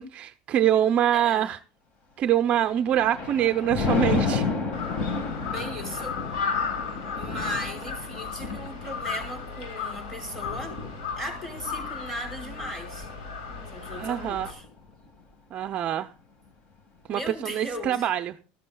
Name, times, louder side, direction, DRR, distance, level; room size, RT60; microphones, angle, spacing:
voice 1, 0.0-1.6 2.2-4.5 13.9-14.5 15.5-16.1 17.1-18.3, right 11 dB, 35° right, 0.6 m, -24 dB
voice 2, 1.1-1.5 5.3-6.2 7.1-10.8 11.2-13.1 13.7-14.6 17.1-18.1, equal, 10° left, 5.3 m, -37 dB
Thunder, 2.6-14.1 14.6-14.9, left 4 dB, 35° left, 1.7 m, -32 dB
Crow, 4.7-14.5, left 5 dB, 85° left, 6.6 m, -35 dB
19.5 x 14.5 x 2.3 m
supercardioid pair, 155°, 4 cm